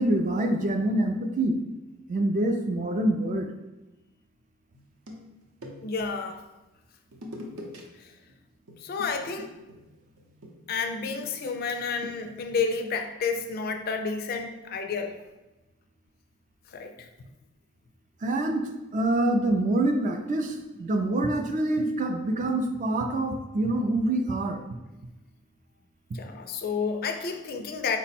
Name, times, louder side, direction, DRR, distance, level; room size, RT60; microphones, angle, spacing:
voice 1, 0.0-1.6 2.1-3.5 18.2-24.6, right 1 dB, 35° right, 5 dB, 0.3 m, -26 dB
sound 1, 4.7-6.1 7.1-7.8 8.1-8.3 8.7-12.7, left 1 dB, 70° right, 0.7 m, -45 dB
voice 2, 5.8-6.4 8.0-8.1 8.8-9.5 10.7-15.2 16.7-17.1 26.1-28.0, left 5 dB, 45° left, 6 dB, 0.3 m, -30 dB
4.3 x 2.1 x 4.2 m, 1.0 s
head